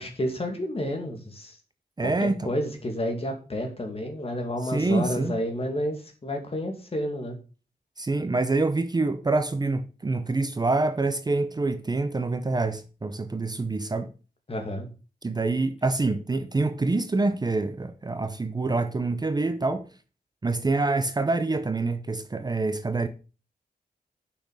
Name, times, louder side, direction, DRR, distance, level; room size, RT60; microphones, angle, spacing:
voice 1, 0.0-1.6 2.0-7.4 14.5-14.9, equal, 35° left, 2.4 m, -30 dB
voice 2, 2.0-2.5 4.7-5.3 8.0-14.1 15.2-19.9 20.4-23.1, right 3 dB, 25° right, 0.7 m, -26 dB
6.5 x 5.9 x 6.5 m
wide cardioid pair, 120°, 16 cm